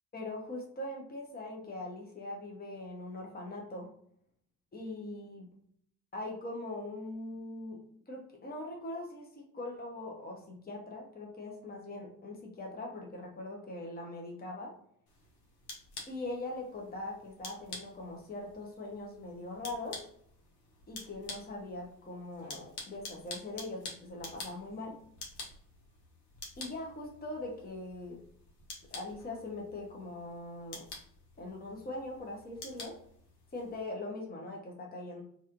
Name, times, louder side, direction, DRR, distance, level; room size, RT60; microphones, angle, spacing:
voice 1, 0.1-3.9 4.7-5.5 6.1-7.8 8.1-14.7 16.1-20.0 20.9-25.0 26.6-28.2 28.9-30.8 31.4-32.9 33.5-35.2, left 2 dB, 20° left, -1 dB, 1.1 m, -41 dB
sound 1, 15.1-33.8, left 3 dB, 60° left, 1.3 m, -49 dB
3.0 x 2.9 x 2.5 m, 0.66 s
hypercardioid pair, 60°, 47 cm